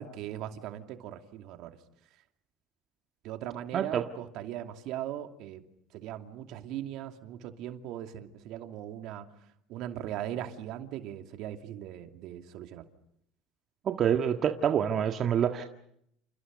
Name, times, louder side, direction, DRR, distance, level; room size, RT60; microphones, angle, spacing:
voice 1, 0.0-1.7 3.2-5.6 5.9-9.3 9.7-12.8, right 11 dB, 65° right, 6 dB, 2.6 m, -39 dB
voice 2, 3.7-4.1 13.8-15.6, right 9 dB, 50° right, 5 dB, 1.7 m, -27 dB
29.5 x 29.0 x 5.3 m, 0.72 s
supercardioid pair, 90°, 0 cm